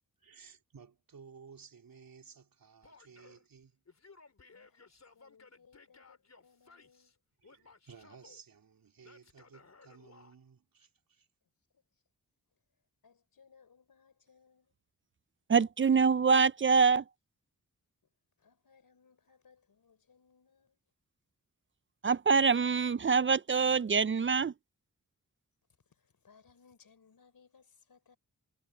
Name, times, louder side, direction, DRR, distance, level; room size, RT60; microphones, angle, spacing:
voice 1, 0.2-3.8 7.4-11.3, right 6 dB, 90° right, 4.0 m, -56 dB
Male speech man speaking / Yell, 2.8-3.4 3.9-7.1 7.4-8.4 9.0-10.3, left 4 dB, 50° left, 4.1 m, -59 dB
voice 2, 4.5-7.2 11.7-11.8 13.0-14.8 18.4-20.8 25.8-28.2, left 6 dB, 85° left, 5.2 m, -64 dB
voice 3, 15.5-17.0 22.0-24.5, right 5 dB, 35° right, 0.4 m, -25 dB
wide cardioid pair, 95°, 34 cm